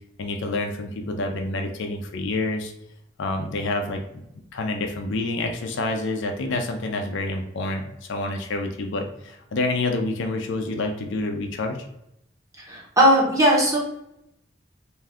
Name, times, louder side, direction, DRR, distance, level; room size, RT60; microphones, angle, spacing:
voice 1, 0.2-2.7 3.2-4.2 4.5-11.8, left 2 dB, 65° left, 4 dB, 0.4 m, -28 dB
voice 2, 12.7-13.8, equal, 15° right, -4 dB, 0.8 m, -18 dB
2.5 x 2.3 x 3.4 m, 0.81 s
head